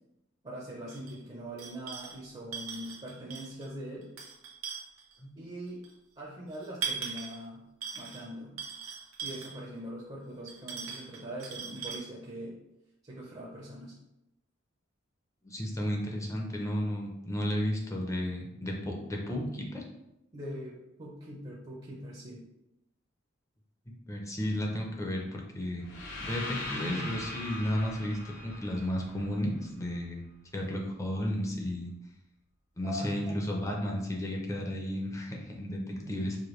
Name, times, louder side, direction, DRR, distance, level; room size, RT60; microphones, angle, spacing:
voice 1, 0.4-4.1 5.3-5.8 6.2-7.6 7.9-8.5 9.2-12.6 13.0-13.9 20.3-22.4 32.8-33.4 36.0-36.2, equal, 25° right, -4 dB, 0.6 m, -42 dB
sound 1, 0.9-1.1 1.6-2.2 2.5-3.7 4.0-5.1 5.8-5.9 6.5-7.4 7.8-8.3 8.6-9.6 10.5-12.0, right 6 dB, 90° right, 0.8 m, -39 dB
voice 2, 15.4-19.8 24.1-28.2 28.4-30.2 30.5-31.9 32.8-36.4, equal, 15° left, 0 dB, 0.6 m, -33 dB
sound 2, 25.8-29.9, left 2 dB, 60° left, 0.8 m, -41 dB
4.8 x 2.2 x 3.1 m, 0.89 s
head